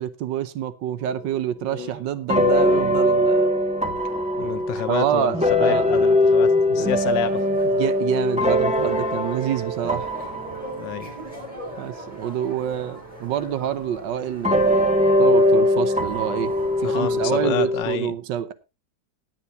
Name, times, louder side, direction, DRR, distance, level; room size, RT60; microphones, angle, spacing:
voice 1, 0.0-3.5 4.8-5.9 6.7-6.9 7.8-10.1 11.8-14.9 15.2-16.5 16.8-18.5, right 10 dB, 85° right, 1.6 m, -27 dB
sound 1, 1.0-1.2 2.3-12.2 12.9-13.0 14.4-17.8, left 1 dB, 5° right, 1.9 m, -21 dB
voice 2, 4.4-7.4 10.8-11.1 16.8-18.1, left 12 dB, 85° left, 1.5 m, -29 dB
sound 2, 6.7-17.7, left 1 dB, 20° left, 6.9 m, -41 dB
18.0 x 9.4 x 2.8 m
omnidirectional pair, 1.9 m